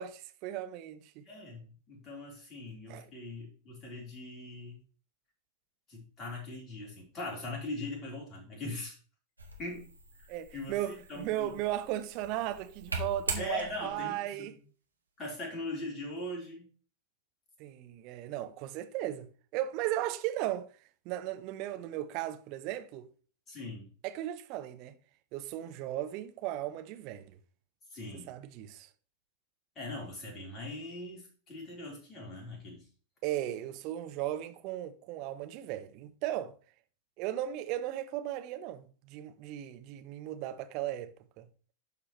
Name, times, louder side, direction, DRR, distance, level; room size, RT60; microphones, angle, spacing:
voice 1, 0.0-1.3 2.9-3.1 10.3-14.6 17.6-20.7 21.0-23.1 24.0-25.0 25.3-27.4 28.3-28.9 33.2-36.5 37.2-41.5, right 13 dB, 40° right, 0.8 m, -36 dB
voice 2, 1.3-4.8 5.9-9.0 9.6-9.9 10.5-11.6 13.4-14.5 15.2-16.7 23.5-23.9 27.9-28.3 29.8-32.9, left 2 dB, 25° left, 3.9 m, -41 dB
sound 1, 9.4-14.1, right 2 dB, 80° right, 1.7 m, -41 dB
12.0 x 4.9 x 3.1 m
figure-of-eight pair, 90°, 0 cm